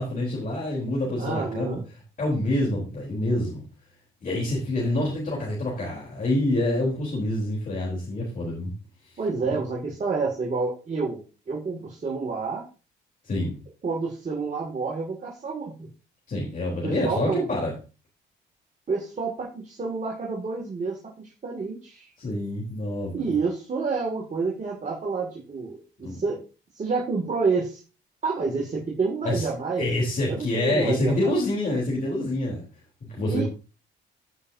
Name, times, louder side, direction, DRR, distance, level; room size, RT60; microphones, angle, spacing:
voice 1, 0.0-1.8 2.2-3.6 4.2-8.7 13.2-13.5 16.3-17.7 22.2-23.3 26.0-26.2 29.2-29.5 29.7-32.6 33.0-33.5, left 1 dB, 45° left, -3 dB, 3.7 m, -26 dB
voice 2, 1.2-1.8 9.2-11.2 11.5-12.6 13.8-15.9 16.8-17.5 18.9-22.1 23.1-26.4 26.7-27.8 28.2-29.9 30.3-31.3 33.2-33.4, right 4 dB, 40° right, -2 dB, 2.3 m, -29 dB
14.0 x 5.7 x 2.7 m, 0.34 s
cardioid pair, 90°, 20 cm